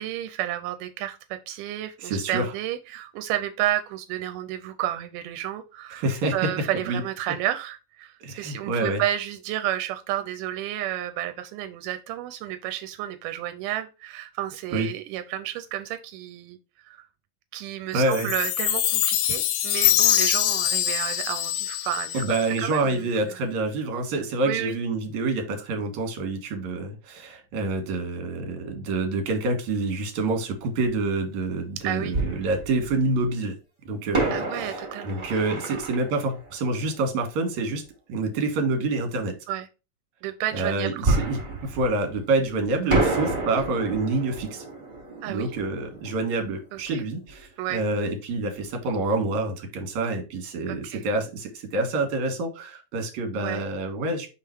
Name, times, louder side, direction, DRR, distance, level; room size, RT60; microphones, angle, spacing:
voice 1, 0.0-6.1 6.3-17.0 17.5-23.1 24.4-24.8 31.8-32.2 34.3-35.9 39.5-39.7 40.2-41.3 42.9-43.1 45.2-45.5 46.7-47.0 47.6-47.8 50.7-51.0 53.4-53.6, right 12 dB, 90° right, 9 dB, 2.2 m, -31 dB
voice 2, 2.0-2.4 5.9-6.3 6.9-7.0 8.2-9.0 14.7-14.9 17.9-18.3 22.1-33.6 33.9-37.8 38.1-39.3 40.5-44.6 45.3-54.3, right 2 dB, 65° right, 4 dB, 2.8 m, -27 dB
Chime, 18.1-22.6, left 12 dB, 75° left, 1.9 m, -24 dB
Fireworks, 32.1-33.2 34.1-37.6 41.0-42.5 42.9-47.4 47.7-47.8 48.3-48.5, right 2 dB, 15° right, 2.3 m, -29 dB
5.6 x 3.8 x 4.5 m, 0.30 s
omnidirectional pair, 3.7 m